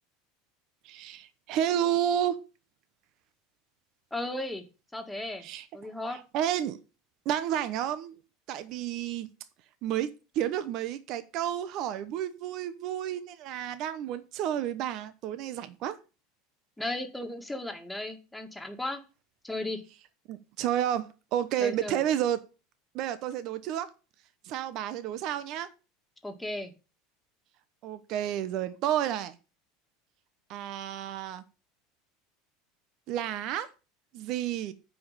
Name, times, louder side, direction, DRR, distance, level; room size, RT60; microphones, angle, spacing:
voice 1, 0.8-2.3 5.4-5.7 6.1-6.8 7.3-8.2 8.5-9.3 9.8-16.0 20.3-22.4 22.9-23.9 24.4-25.7 27.8-29.3 30.5-31.4 33.1-33.7 34.1-34.7, right 10 dB, 55° right, 0.8 m, -31 dB
voice 2, 4.1-4.6 4.9-5.5 5.7-6.2 16.8-19.0 19.4-19.8 21.6-22.0 26.2-26.7, left 1 dB, 5° left, 1.8 m, -35 dB
8.7 x 5.1 x 6.6 m
supercardioid pair, 110°, 0 cm